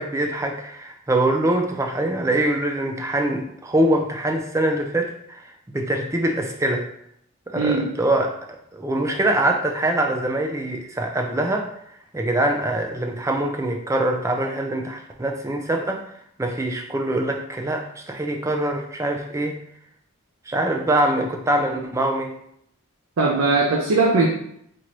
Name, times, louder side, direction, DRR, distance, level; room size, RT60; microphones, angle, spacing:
voice 1, 0.0-6.9 7.5-8.3 8.7-11.7 12.1-16.0 16.4-19.6 20.5-22.3, right 1 dB, 15° right, 3 dB, 0.4 m, -23 dB
voice 2, 23.2-24.3, right 3 dB, 80° right, -1 dB, 0.5 m, -19 dB
4.5 x 2.6 x 3.0 m, 0.70 s
head